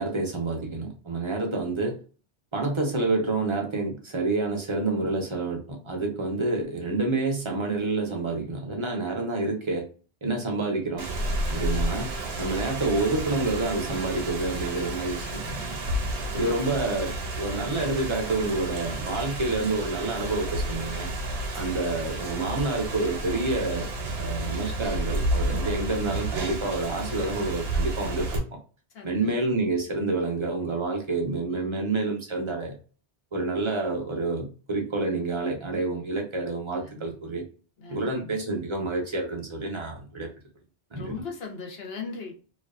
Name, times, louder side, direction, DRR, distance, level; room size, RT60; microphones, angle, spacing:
voice 1, 0.0-2.0 2.5-9.9 10.2-11.1 11.5-12.1 12.4-15.8 16.3-21.1 21.5-23.9 24.2-28.6 29.0-32.7 33.3-37.4 37.9-40.3 40.9-41.2, right 3 dB, 40° right, 1 dB, 0.5 m, -28 dB
Rain, 11.0-28.4, right 1 dB, 75° right, 0.8 m, -31 dB
voice 2, 16.3-16.8 25.5-25.8 28.9-29.3 36.8-37.0 37.8-38.4 41.0-42.3, left 4 dB, 70° left, 1 dB, 1.0 m, -39 dB
2.4 x 2.3 x 2.3 m, 0.37 s
omnidirectional pair, 1.1 m